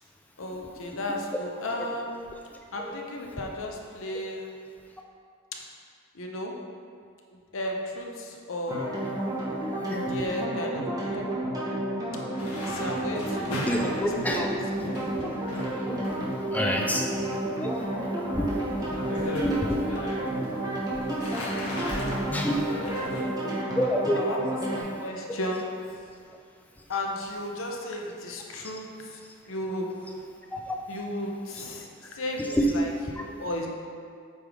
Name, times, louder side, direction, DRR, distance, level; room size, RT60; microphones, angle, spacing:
voice 1, 0.4-2.1 2.7-4.5 6.1-6.5 7.3-9.0 10.1-11.3 12.7-15.2 16.5-17.2 22.7-23.6 24.1-24.4 24.6-25.8 26.9-30.1 30.9-33.7, left 1 dB, 65° left, 0 dB, 0.8 m, -35 dB
sound 1, 8.7-24.8, right 1 dB, 15° right, 1.2 m, -31 dB
sound 2, 12.4-23.2, equal, 90° left, 1.4 m, -39 dB
voice 2, 13.7-14.5 15.1-15.6 15.9-17.2 17.6-17.7 18.3-18.6 19.1-19.8 21.1-22.7 23.8-24.6 30.7-30.8 32.6-32.7, equal, 5° left, 1 dB, 0.4 m, -29 dB
8.0 x 3.6 x 4.9 m, 2.2 s
head